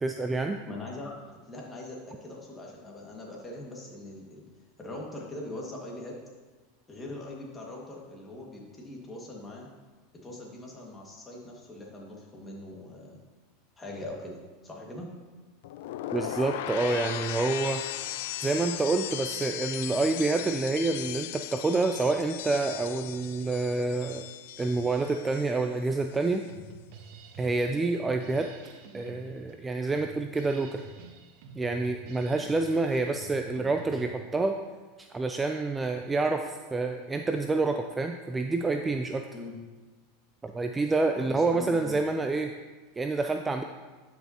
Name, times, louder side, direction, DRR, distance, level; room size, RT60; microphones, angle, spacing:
voice 1, 0.0-0.6 16.1-17.8 18.4-24.3 24.6-26.4 27.4-28.5 28.9-30.8 31.5-34.6 35.0-39.2 40.4-42.5 43.0-43.6, right 3 dB, 15° right, 5 dB, 0.4 m, -28 dB
voice 2, 0.7-4.4 4.8-6.1 6.9-9.7 10.2-13.2 13.8-15.1 39.3-39.5 41.2-42.0, left 2 dB, 15° left, -2 dB, 1.8 m, -41 dB
sound 1, 15.6-25.7 26.0-26.5, left 12 dB, 70° left, 0.3 m, -37 dB
Drum kit, 26.5-34.1, right 5 dB, 60° right, 0.9 m, -48 dB
11.5 x 5.6 x 2.9 m, 1.3 s
supercardioid pair, 120°, 0 cm